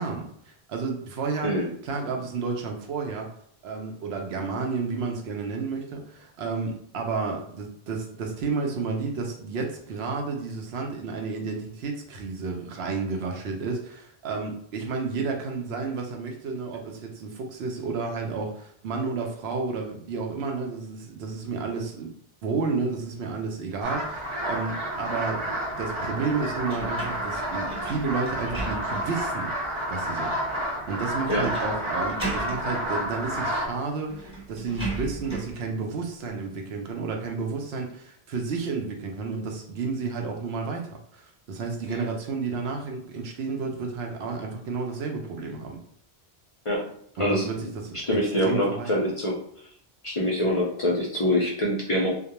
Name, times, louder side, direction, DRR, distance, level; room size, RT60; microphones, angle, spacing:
voice 1, 0.0-1.6 1.8-3.3 3.6-22.1 22.4-29.5 29.9-45.8 47.2-49.1, right 4 dB, 85° right, 2 dB, 0.8 m, -31 dB
sound 1, 23.8-33.7, equal, 40° right, 0.5 m, -30 dB
sound 2, 26.7-29.2 29.8-29.9 31.3-31.7 32.0-32.6 33.7-33.8 34.1-35.6, right 2 dB, 5° right, 0.9 m, -36 dB
voice 2, 47.9-49.4 50.0-52.1, left 1 dB, 45° left, -4 dB, 0.4 m, -24 dB
2.3 x 2.2 x 2.8 m, 0.65 s
omnidirectional pair, 1.1 m